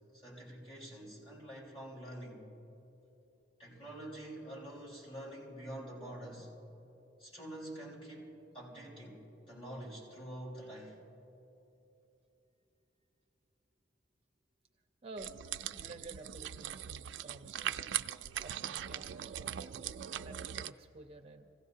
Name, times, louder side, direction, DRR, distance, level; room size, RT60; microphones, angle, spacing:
voice 1, 0.1-2.5 3.6-6.5 7.2-11.0, right 1 dB, 30° left, -6 dB, 4.5 m, -47 dB
sound 1, 15.2-20.7, right 10 dB, 85° right, 0.4 m, -40 dB
voice 2, 15.7-17.7 18.4-19.6 20.2-21.5, right 3 dB, 35° right, 5 dB, 0.6 m, -51 dB
26.5 x 17.0 x 2.8 m, 3.0 s
head